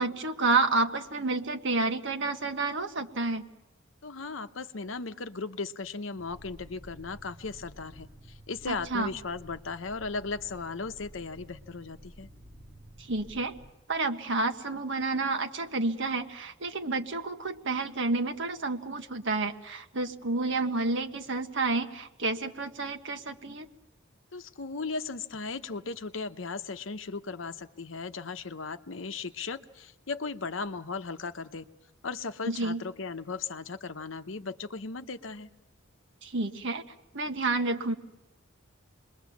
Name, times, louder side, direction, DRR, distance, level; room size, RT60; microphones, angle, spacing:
voice 1, 0.0-3.5 8.7-9.1 13.0-13.5 13.9-23.7 32.5-32.8 36.2-36.8 37.1-38.0, right 3 dB, 65° right, 6 dB, 1.5 m, -30 dB
voice 2, 4.0-12.3 24.3-31.7 32.0-35.5, left 4 dB, 70° left, 10 dB, 0.9 m, -37 dB
sound 1, 6.2-13.7, equal, 20° right, 3.0 m, -51 dB
28.0 x 22.0 x 7.2 m, 0.97 s
head